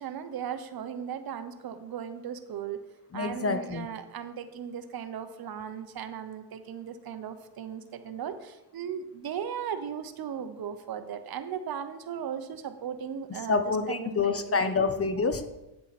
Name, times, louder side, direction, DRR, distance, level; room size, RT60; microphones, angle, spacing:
voice 1, 0.0-2.8 3.1-14.7, right 8 dB, 55° right, 10 dB, 1.0 m, -37 dB
voice 2, 3.1-3.9 13.5-15.4, left 4 dB, 30° left, 9 dB, 1.0 m, -27 dB
9.8 x 7.4 x 4.3 m, 0.97 s
supercardioid pair, 80°, 45 cm